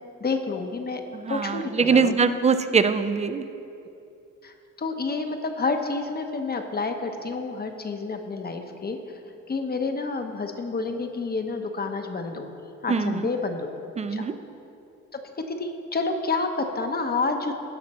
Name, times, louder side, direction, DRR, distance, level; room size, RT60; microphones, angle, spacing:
voice 1, 0.2-1.0 1.3-2.1 4.4-9.2 9.5-12.5 12.8-13.7 14.1-14.3 15.1-17.5, left 3 dB, 30° left, 5 dB, 0.8 m, -29 dB
voice 2, 1.1-3.5 12.9-13.3 14.0-14.4, right 5 dB, 20° right, 12 dB, 0.4 m, -23 dB
16.5 x 5.8 x 4.2 m, 2.8 s
cardioid pair, 90°, 30 cm